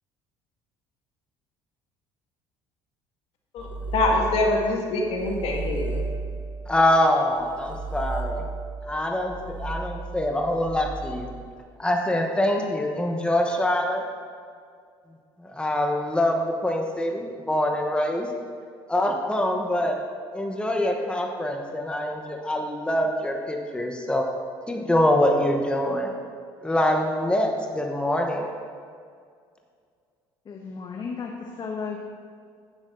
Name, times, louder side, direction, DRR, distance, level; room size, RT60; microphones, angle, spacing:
voice 1, 3.5-6.1, left 2 dB, 65° left, 0 dB, 2.0 m, -25 dB
sound 1, 3.6-4.7 5.0-11.6, right 3 dB, 15° right, 1.3 m, -34 dB
voice 2, 6.7-8.5 8.9-11.3 11.8-14.0 15.4-18.3 18.9-20.0 20.3-24.2 24.7-26.1 26.6-28.5, left 1 dB, 10° left, 2 dB, 1.2 m, -24 dB
voice 3, 30.4-32.0, left 5 dB, 40° left, 0 dB, 1.2 m, -34 dB
11.0 x 8.9 x 3.9 m, 2.2 s
supercardioid pair, 85°, 11 cm